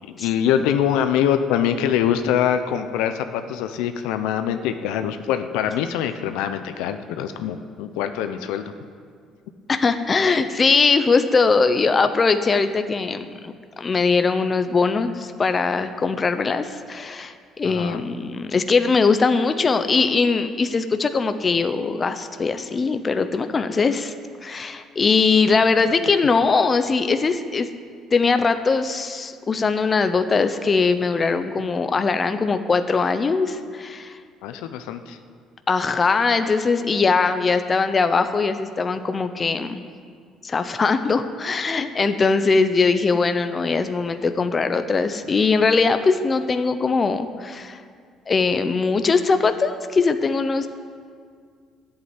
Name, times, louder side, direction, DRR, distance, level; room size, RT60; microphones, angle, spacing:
voice 1, 0.1-8.7 17.6-18.0 34.4-35.2, left 9 dB, 90° left, 8 dB, 0.8 m, -24 dB
voice 2, 9.7-24.1 24.4-27.7 28.1-34.2 35.7-39.8 40.4-47.8 48.3-50.7, left 4 dB, 30° left, 9 dB, 0.9 m, -21 dB
13.5 x 8.2 x 9.7 m, 2.1 s
cardioid pair, 105°, 0 cm